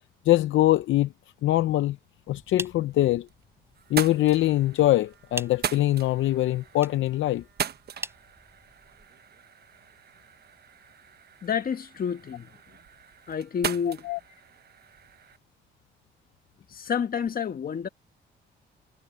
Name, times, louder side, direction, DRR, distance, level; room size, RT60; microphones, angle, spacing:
voice 1, 0.3-1.1 1.4-2.0 2.3-3.3 3.9-7.4 14.0-14.2, left 15 dB, 75° left, 0.7 m, -23 dB
sound 1, 2.3-9.1, right 2 dB, 10° right, 6.1 m, -43 dB
sound 2, 2.9-3.4 3.7-15.4, right 8 dB, 55° right, 1.2 m, -39 dB
voice 2, 11.4-12.5 13.3-14.1 16.7-17.9, left 7 dB, 45° left, 1.5 m, -29 dB
cardioid pair, 90°, 20 cm